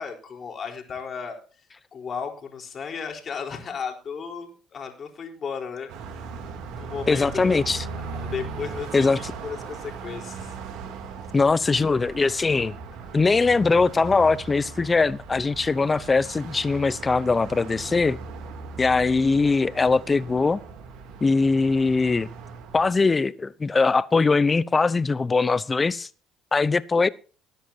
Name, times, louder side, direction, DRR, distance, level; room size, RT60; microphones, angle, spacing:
voice 1, 0.0-1.7 1.9-5.9 6.7-7.6 8.0-10.6, left 6 dB, 45° left, 4.3 m, -35 dB
Car passing by, 5.9-23.1, right 4 dB, 70° right, 3.1 m, -38 dB
voice 2, 7.1-7.8 8.9-9.3 11.3-12.7 13.1-18.2 18.8-20.6 21.2-22.3 22.7-26.1 26.5-27.1, left 4 dB, 25° left, 0.8 m, -21 dB
20.0 x 10.5 x 2.9 m
hypercardioid pair, 65°, 0 cm